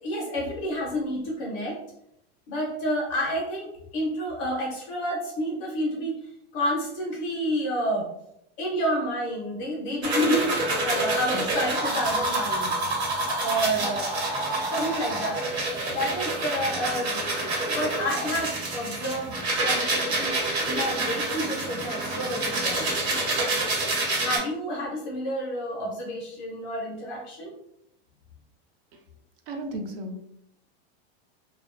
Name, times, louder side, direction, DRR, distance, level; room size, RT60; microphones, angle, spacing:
voice 1, 0.0-1.8 2.5-6.1 6.5-8.1 8.6-10.5 10.8-12.7 13.4-14.1 14.7-15.4 15.9-17.2 17.7-19.3 19.6-22.9 24.2-27.5, equal, 25° left, -2 dB, 0.4 m, -29 dB
sound 1, 10.0-24.4, right 2 dB, 85° right, 1.1 m, -27 dB
voice 2, 29.5-30.2, right 1 dB, 60° right, 4 dB, 0.5 m, -34 dB
2.5 x 2.1 x 2.4 m, 0.76 s
supercardioid pair, 170°, 32 cm